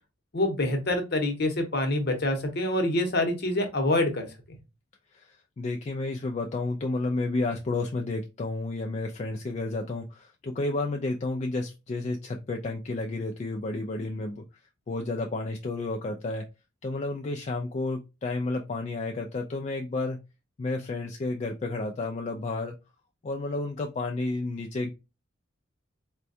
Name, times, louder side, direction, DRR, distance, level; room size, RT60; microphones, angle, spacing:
voice 1, 0.3-4.6, left 1 dB, 55° left, 5 dB, 0.9 m, -26 dB
voice 2, 5.1-14.4 14.9-16.5 16.8-20.2 20.6-22.7 23.2-24.9, left 2 dB, 35° left, 3 dB, 0.3 m, -31 dB
4.3 x 2.2 x 2.6 m, 0.27 s
head